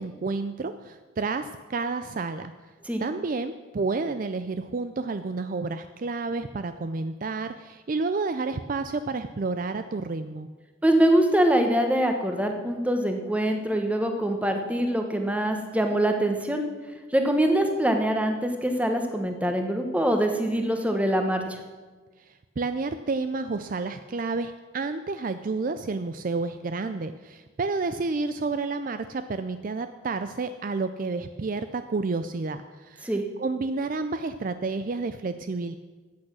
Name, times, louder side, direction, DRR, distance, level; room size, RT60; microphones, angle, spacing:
voice 1, 0.0-2.5 3.0-10.5 22.2-33.1 33.4-35.8, right 3 dB, 40° right, 10 dB, 0.4 m, -30 dB
voice 2, 10.8-16.6 17.1-21.6 33.0-33.2, right 1 dB, 5° right, 4 dB, 1.1 m, -24 dB
14.0 x 8.8 x 6.2 m, 1.3 s
head